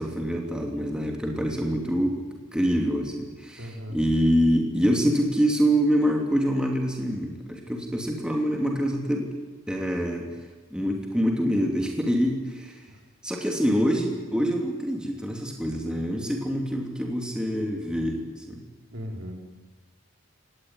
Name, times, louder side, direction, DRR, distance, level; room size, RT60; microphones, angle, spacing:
voice 1, 0.0-2.2 2.5-9.3 9.7-10.3 10.7-12.9 13.2-18.6, equal, 5° right, 1 dB, 3.0 m, -25 dB
voice 2, 3.6-4.0 12.9-13.0 18.9-19.3, equal, 65° right, 2 dB, 4.6 m, -37 dB
26.5 x 19.0 x 9.7 m, 1.3 s
head